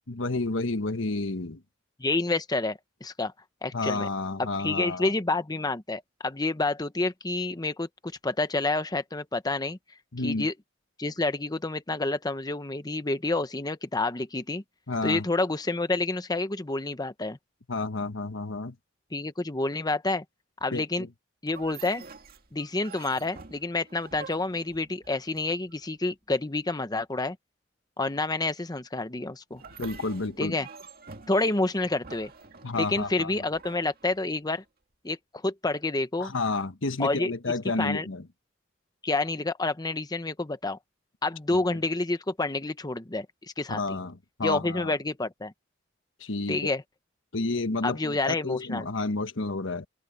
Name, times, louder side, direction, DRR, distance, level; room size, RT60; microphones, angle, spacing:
voice 1, 0.1-1.6 3.7-5.1 10.1-10.5 14.9-15.2 17.7-18.7 20.7-21.1 29.8-30.6 32.6-33.3 36.2-38.2 41.5-41.8 43.7-44.9 46.2-46.7 47.3-49.9, left 3 dB, 75° left, 1.3 m, -30 dB
voice 2, 2.0-3.3 3.6-4.1 4.4-9.8 10.2-10.5 11.0-14.6 15.0-17.4 19.1-20.2 20.6-21.1 21.4-22.0 22.5-27.4 28.0-29.6 30.4-30.7 31.3-32.3 32.7-34.6 35.0-35.2 35.4-36.3 37.0-37.3 37.8-38.1 39.0-40.8 41.2-43.3 43.6-44.0 44.4-45.5 46.5-46.8 47.8-48.9, left 2 dB, 20° left, 0.9 m, -28 dB
sound 1, 21.5-25.8 29.5-34.6, right 4 dB, 50° right, 2.0 m, -47 dB
head